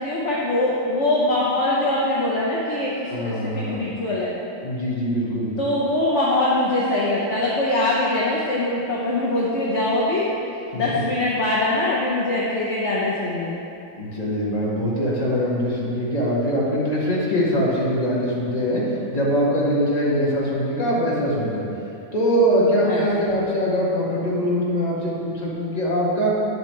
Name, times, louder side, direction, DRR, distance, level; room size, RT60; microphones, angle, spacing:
voice 1, 0.0-4.3 5.6-10.2 10.7-13.6 22.9-23.3, left 2 dB, 50° left, -5 dB, 1.2 m, -23 dB
voice 2, 3.1-3.9 4.6-5.5 10.7-11.0 13.9-18.8 19.1-21.6 22.1-26.3, equal, 25° left, -7 dB, 1.8 m, -22 dB
10.0 x 7.8 x 3.3 m, 2.7 s
omnidirectional pair, 1.6 m